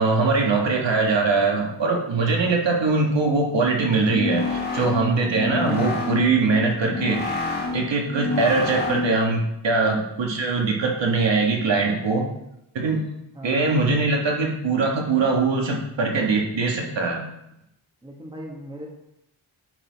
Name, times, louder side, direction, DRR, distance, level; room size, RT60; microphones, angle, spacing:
voice 1, 0.0-7.2 7.7-12.3 12.7-13.0 13.4-17.3, right 3 dB, 60° right, -1 dB, 1.7 m, -22 dB
sound 1, 4.0-9.3, left 3 dB, 20° left, 2.0 m, -28 dB
voice 2, 13.3-13.9 18.0-18.9, right 1 dB, 10° right, -1 dB, 1.4 m, -38 dB
9.8 x 4.2 x 4.1 m, 0.82 s
wide cardioid pair, 100°, 50 cm